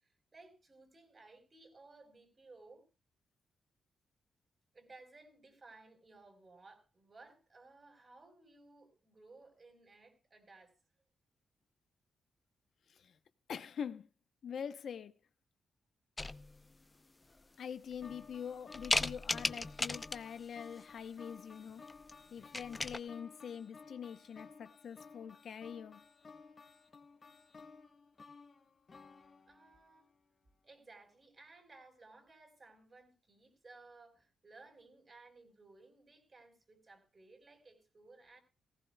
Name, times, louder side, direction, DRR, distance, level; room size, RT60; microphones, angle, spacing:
voice 1, 0.0-2.9 4.7-10.7 29.5-30.1 30.6-38.4, right 3 dB, 40° right, 4.4 m, -59 dB
voice 2, 13.5-14.1 14.4-15.2 17.6-21.8 22.3-26.0, left 7 dB, 70° left, 0.8 m, -44 dB
sound 1, 16.2-16.8 17.4-17.5 17.9-18.4 18.7-20.4 21.9-22.1 22.4-23.0, left 2 dB, 25° left, 0.6 m, -36 dB
sound 2, 18.0-30.2, left 4 dB, 40° left, 1.6 m, -56 dB
18.0 x 15.5 x 2.3 m
cardioid pair, 70°, 0 cm